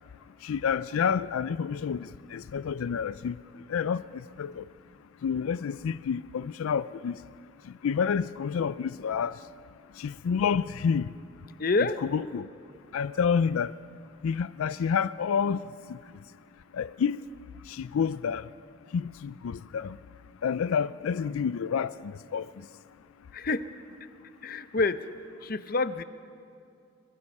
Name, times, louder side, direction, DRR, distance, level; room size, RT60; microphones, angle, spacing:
voice 1, 0.4-3.4 3.7-4.6 5.2-7.2 7.7-9.4 10.0-11.1 12.1-12.5 12.9-13.7 14.2-15.6 15.9-16.0 16.7-17.2 17.7-18.5 18.9-20.0 20.4-22.5, left 6 dB, 85° left, 0.4 m, -29 dB
voice 2, 11.6-12.0 23.3-23.7 24.4-25.0 25.4-26.0, left 3 dB, 45° left, 0.6 m, -27 dB
23.0 x 22.0 x 5.4 m
head